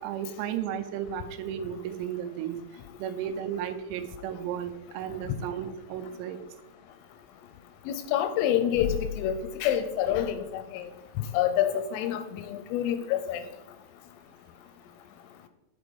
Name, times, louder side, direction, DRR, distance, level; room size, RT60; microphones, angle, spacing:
voice 1, 0.0-2.6 3.0-6.4, right 9 dB, 90° right, 9 dB, 3.5 m, -34 dB
voice 2, 7.9-10.9 11.3-13.4, left 10 dB, 85° left, 9 dB, 3.1 m, -27 dB
10.0 x 5.0 x 5.2 m, 0.95 s
omnidirectional pair, 6.0 m